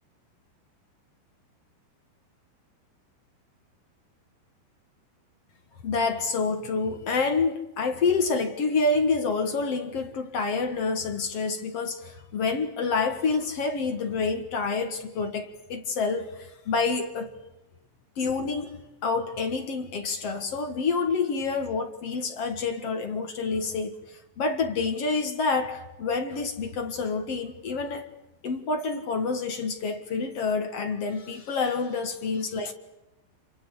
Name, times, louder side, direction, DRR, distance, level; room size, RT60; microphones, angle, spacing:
voice 1, 5.8-17.3 18.2-18.8 19.0-28.1 28.4-32.7, left 4 dB, 60° left, 1.6 m, -28 dB
28.0 x 25.5 x 8.1 m
omnidirectional pair, 5.3 m